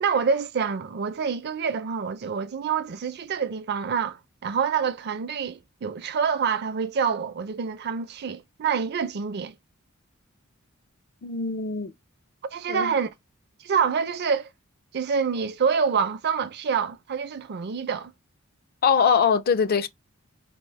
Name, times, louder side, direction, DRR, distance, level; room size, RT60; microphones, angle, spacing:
voice 1, 0.0-9.5 12.4-13.1 13.6-14.5 14.9-18.1, right 6 dB, 50° right, 0.4 m, -27 dB
voice 2, 11.2-11.9 12.7-12.9 18.8-19.9, left 6 dB, 45° left, 0.4 m, -22 dB
4.3 x 2.0 x 3.1 m
head